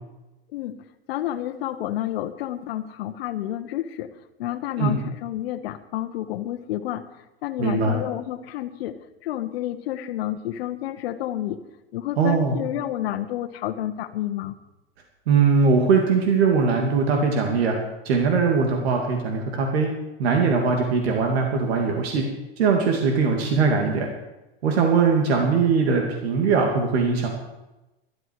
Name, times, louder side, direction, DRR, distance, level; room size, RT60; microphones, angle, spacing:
voice 1, 1.1-4.1 4.4-7.1 7.4-11.6 11.9-14.5, left 13 dB, 70° left, 9 dB, 1.3 m, -30 dB
voice 2, 7.6-8.0 12.2-12.6 15.3-17.8 18.0-19.9 20.2-22.2 22.6-24.1 24.6-27.3, right 5 dB, 75° right, 1 dB, 2.9 m, -21 dB
18.5 x 13.0 x 4.9 m, 1.0 s
hypercardioid pair, 110°, 31 cm